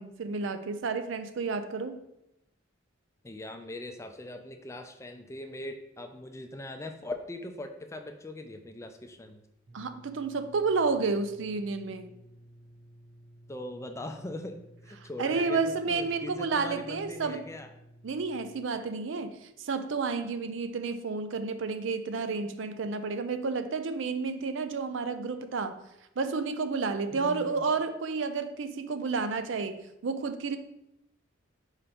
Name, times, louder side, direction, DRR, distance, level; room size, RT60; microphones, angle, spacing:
voice 1, 0.0-2.0 9.7-12.1 15.2-17.4 18.0-25.8 26.2-30.6, right 4 dB, 70° right, 10 dB, 0.5 m, -31 dB
voice 2, 3.2-9.4 13.5-17.7 27.1-27.6, left 1 dB, 15° left, 6 dB, 0.4 m, -41 dB
sound 1, 9.7-18.6, equal, 50° right, 0.8 m, -55 dB
5.1 x 4.4 x 4.2 m, 0.86 s
head